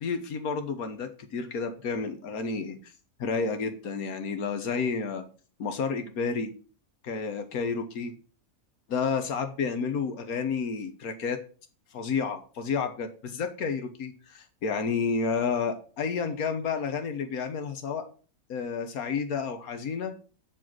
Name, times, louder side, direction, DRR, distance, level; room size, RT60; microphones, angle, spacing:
voice 1, 0.0-2.9 3.2-5.2 5.6-6.5 7.0-8.1 8.9-11.4 11.9-18.0 18.5-20.1, left 5 dB, 85° left, 7 dB, 1.5 m, -30 dB
8.9 x 4.5 x 6.1 m, 0.38 s
omnidirectional pair, 1.5 m